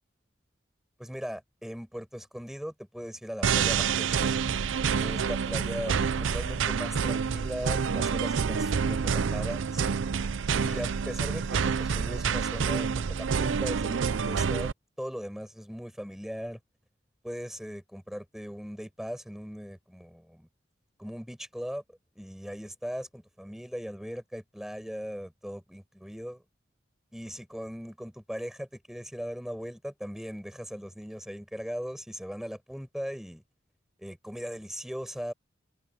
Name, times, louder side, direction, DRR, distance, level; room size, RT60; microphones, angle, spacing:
voice 1, 1.0-4.3 5.0-9.8 10.5-14.7 15.0-16.6 17.2-20.5 21.0-26.4 27.1-33.4 34.0-35.3, equal, ahead, 7.1 m, -39 dB
sound 1, 3.4-14.7, right 6 dB, 90° right, 0.5 m, -28 dB
head